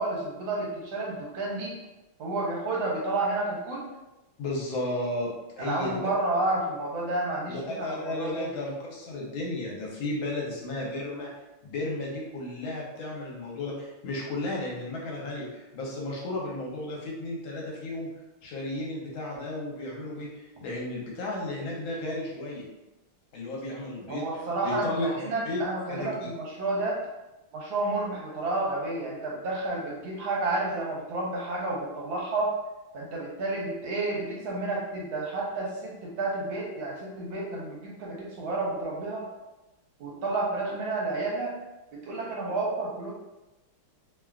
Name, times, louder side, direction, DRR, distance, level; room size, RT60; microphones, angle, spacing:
voice 1, 0.0-1.8 2.2-3.9 5.6-8.5 24.1-27.0 27.5-32.6 32.9-39.3 40.0-41.5 41.9-43.1, right 2 dB, 75° right, -3 dB, 1.4 m, -30 dB
voice 2, 4.4-5.3 5.6-5.9 7.5-11.3 11.6-18.1 18.4-22.7 23.3-25.6 25.9-26.3, left 2 dB, 75° left, -3 dB, 1.4 m, -34 dB
3.3 x 2.3 x 2.3 m, 0.99 s
omnidirectional pair, 2.3 m